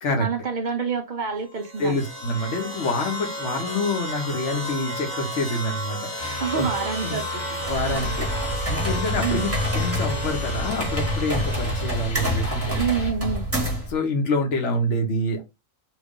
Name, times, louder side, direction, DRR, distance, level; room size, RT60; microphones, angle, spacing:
voice 1, 0.2-2.0 6.4-8.1 9.2-9.5 12.8-13.5, right 6 dB, 60° right, 0.5 m, -28 dB
sound 1, 1.5-12.8, right 1 dB, 20° left, 1.1 m, -33 dB
voice 2, 1.8-6.7 7.0-7.2 7.7-8.3 8.7-9.5 9.7-12.8 13.9-15.4, left 2 dB, 65° left, 1.2 m, -26 dB
sound 2, 6.2-13.1, left 4 dB, 40° left, 1.0 m, -36 dB
sound 3, 7.6-13.9, equal, 10° right, 1.0 m, -27 dB
3.0 x 2.3 x 3.6 m
omnidirectional pair, 1.4 m